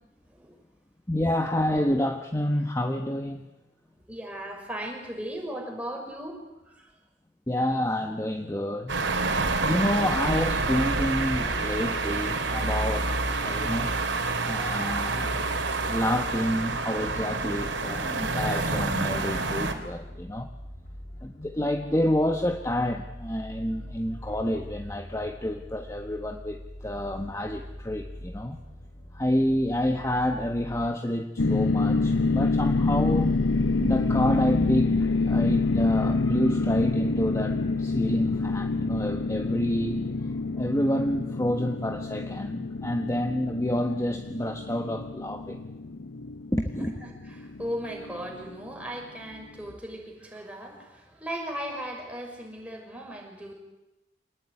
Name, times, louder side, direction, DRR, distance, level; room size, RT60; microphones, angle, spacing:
voice 1, 0.3-0.6 4.1-7.0 11.3-11.6 46.8-53.5, equal, 5° right, 0 dB, 6.1 m, -37 dB
voice 2, 1.1-3.4 7.5-9.0 9.6-13.1 13.4-13.9 14.5-15.4 15.9-20.5 21.2-28.6 29.1-33.3 33.8-40.0 40.5-45.7 46.5-46.9, left 1 dB, 15° left, 5 dB, 1.3 m, -28 dB
sound 1, 8.9-19.7, right 3 dB, 75° right, 3.4 m, -28 dB
sound 2, 16.1-30.9, equal, 45° left, 5.2 m, -44 dB
sound 3, 31.4-48.6, left 3 dB, 80° left, 0.9 m, -27 dB
26.0 x 19.5 x 9.9 m, 1.0 s
head